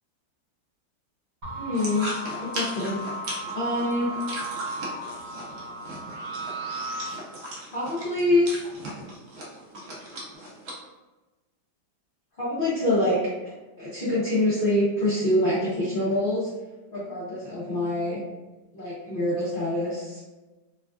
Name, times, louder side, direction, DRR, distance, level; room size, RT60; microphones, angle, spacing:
sound 1, 1.4-7.2, right 1 dB, 45° right, 1.6 m, -35 dB
voice 1, 1.5-2.1 2.4-3.0 3.5-4.2 7.7-8.5 12.4-13.2 13.4-16.5 16.9-18.2 18.7-20.2, left 1 dB, 60° left, -10 dB, 0.5 m, -25 dB
sound 2, 1.7-10.7, equal, 85° right, 0.5 m, -38 dB
3.3 x 2.3 x 2.3 m, 1.1 s
omnidirectional pair, 2.1 m